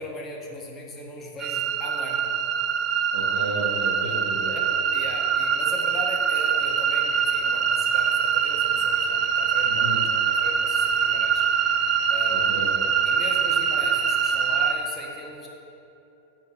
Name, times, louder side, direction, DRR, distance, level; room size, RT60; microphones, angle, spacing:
voice 1, 0.0-2.3 4.0-4.2 4.5-4.6 4.9-11.4 12.1-12.4 13.0-15.5, left 1 dB, 20° left, -1 dB, 1.6 m, -38 dB
sound 1, 1.4-14.8, right 7 dB, 35° right, 0.6 m, -23 dB
voice 2, 3.1-4.5 8.7-8.8 9.6-10.0 12.3-12.7, right 1 dB, 70° right, -3 dB, 1.8 m, -33 dB
8.2 x 6.3 x 5.4 m, 2.9 s
figure-of-eight pair, 90°, 0 cm